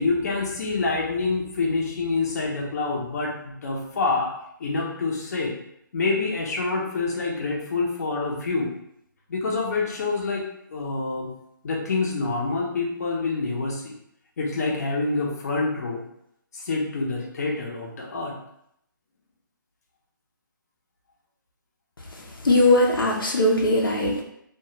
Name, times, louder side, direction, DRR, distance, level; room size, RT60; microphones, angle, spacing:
voice 1, 0.0-4.3 4.6-5.5 5.9-8.7 9.3-10.4 10.7-11.3 11.6-13.9 14.4-16.0 16.5-18.3, left 3 dB, 50° left, -2 dB, 0.7 m, -26 dB
voice 2, 22.4-24.2, left 1 dB, 80° left, -1 dB, 0.7 m, -19 dB
2.4 x 2.3 x 3.0 m, 0.76 s
hypercardioid pair, 155°, 11 cm